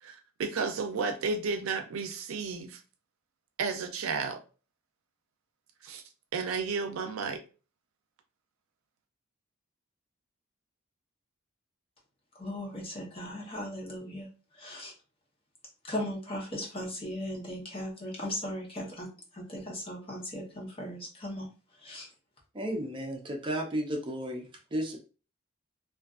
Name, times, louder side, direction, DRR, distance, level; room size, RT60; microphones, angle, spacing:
voice 1, 0.0-2.8 3.6-4.4 5.8-6.0 6.3-7.4, right 4 dB, 85° right, 0.4 m, -32 dB
voice 2, 12.3-14.3 14.5-14.9 15.8-21.5 21.8-22.1, left 1 dB, 25° left, 0.8 m, -38 dB
voice 3, 22.5-24.4 24.7-25.0, right 1 dB, 25° right, 0.4 m, -33 dB
2.5 x 2.4 x 2.3 m
head